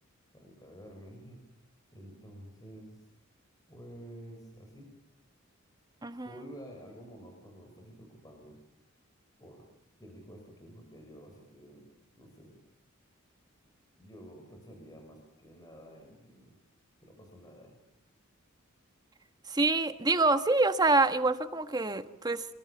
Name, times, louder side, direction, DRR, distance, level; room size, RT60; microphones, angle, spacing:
voice 1, 0.3-1.5 1.9-3.1 3.7-5.0 6.2-8.6 9.4-9.7 10.0-12.6 14.0-16.5 17.0-17.8, equal, 15° left, 7.0 m, -50 dB
voice 2, 19.5-22.5, right 3 dB, 20° right, 1.3 m, -26 dB
28.0 x 27.0 x 7.1 m
head